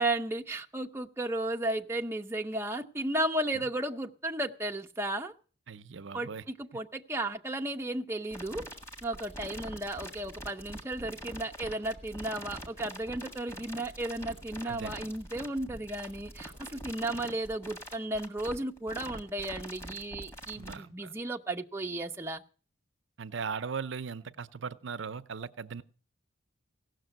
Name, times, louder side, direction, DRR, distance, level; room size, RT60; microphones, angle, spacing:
voice 1, 0.0-5.3 6.1-8.6 9.0-22.4, right 1 dB, 10° right, 0.5 m, -34 dB
voice 2, 5.7-6.4 14.6-14.9 20.6-21.1 23.2-25.8, right 6 dB, 60° right, 0.6 m, -38 dB
sound 1, 8.3-20.7, right 1 dB, 15° left, 1.7 m, -44 dB
16.5 x 6.5 x 7.8 m
head